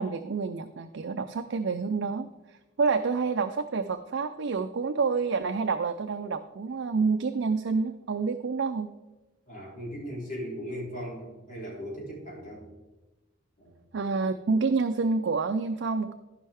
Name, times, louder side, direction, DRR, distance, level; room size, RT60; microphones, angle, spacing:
voice 1, 0.0-2.3 2.8-8.9 13.9-16.1, right 4 dB, 65° right, 8 dB, 0.4 m, -28 dB
voice 2, 9.5-12.7 13.6-13.7, equal, 40° left, -4 dB, 3.1 m, -38 dB
14.0 x 5.5 x 3.4 m, 1.1 s
head